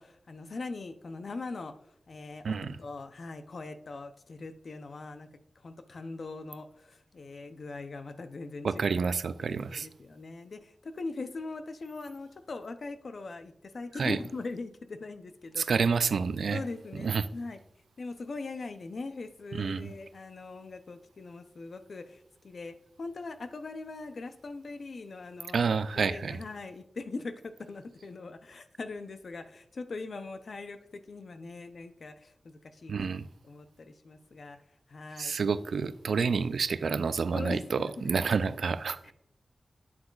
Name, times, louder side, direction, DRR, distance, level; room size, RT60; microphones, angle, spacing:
voice 1, 0.0-5.3 5.6-9.0 9.4-15.6 16.5-17.6 18.0-25.7 26.1-33.1 33.5-34.6 34.9-35.3 37.3-38.1 39.0-39.1, left 3 dB, 65° left, 0.6 m, -41 dB
voice 2, 2.4-2.8 8.6-9.9 14.0-14.2 15.6-16.6 16.9-17.3 19.5-19.9 25.5-26.4 32.9-33.3 35.2-39.1, right 5 dB, 85° right, 0.3 m, -29 dB
8.7 x 7.7 x 2.4 m
cardioid pair, 65°, 0 cm